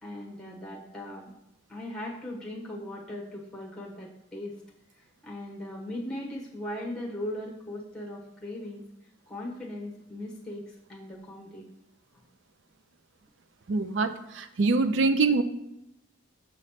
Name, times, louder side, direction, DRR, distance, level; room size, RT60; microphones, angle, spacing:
voice 1, 0.0-1.3 1.7-4.6 5.2-8.8 9.3-11.7, left 1 dB, 5° left, -3 dB, 1.0 m, -38 dB
voice 2, 13.7-15.4, right 3 dB, 65° right, 10 dB, 0.4 m, -24 dB
6.4 x 3.1 x 5.7 m, 0.85 s
head